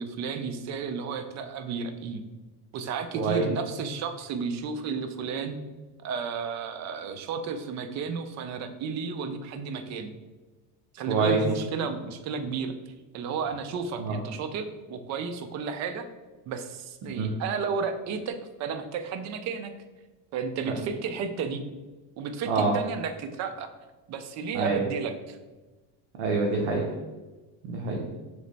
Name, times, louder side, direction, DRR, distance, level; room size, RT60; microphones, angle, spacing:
voice 1, 0.0-2.2 2.7-5.6 6.0-10.1 10.9-12.7 13.1-16.1 16.5-19.7 20.3-21.7 22.2-23.7 24.1-25.4, right 5 dB, 40° right, 8 dB, 0.4 m, -33 dB
voice 2, 3.1-3.5 11.1-11.4 14.0-14.2 17.2-17.3 20.7-20.8 22.5-22.7 24.5-24.8 26.2-26.9 27.6-28.0, right 4 dB, 90° right, -1 dB, 0.8 m, -26 dB
3.2 x 3.0 x 3.9 m, 1.2 s
cardioid pair, 130°, 42 cm